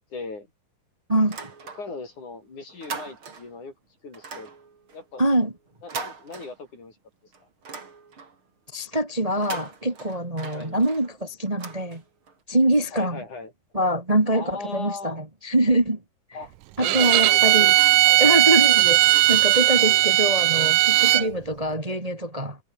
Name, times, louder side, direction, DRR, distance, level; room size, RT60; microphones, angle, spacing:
voice 1, 0.1-0.5 1.8-3.7 4.0-4.5 4.9-5.2 5.8-7.0 7.4-7.5 10.5-10.8 12.9-13.5 14.3-15.2 16.3-16.5 16.8-17.8 18.0-18.2 18.6-18.8 19.8-20.0 21.1-21.3, left 3 dB, 65° left, 8.4 m, -38 dB
voice 2, 1.1-1.5 5.2-5.5 8.7-12.0 12.5-13.2 13.7-16.0 16.8-17.7 18.2-22.6, right 1 dB, 15° right, 2.1 m, -24 dB
sound 1, 1.2-2.2 2.5-3.6 4.1-7.0 7.3-8.5 9.3-12.4, right 5 dB, 40° right, 4.0 m, -40 dB
Bowed string instrument, 16.8-21.3, right 17 dB, 90° right, 2.4 m, -18 dB
omnidirectional pair, 3.7 m